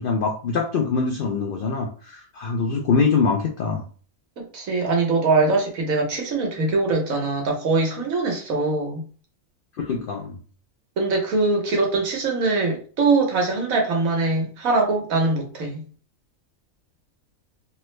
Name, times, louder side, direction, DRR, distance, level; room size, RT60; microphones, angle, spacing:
voice 1, 0.0-3.8 9.9-10.4, left 5 dB, 75° left, 2 dB, 0.5 m, -23 dB
voice 2, 4.5-9.0 11.0-15.8, right 3 dB, 75° right, 1 dB, 1.4 m, -22 dB
3.3 x 2.0 x 3.1 m, 0.41 s
omnidirectional pair, 1.4 m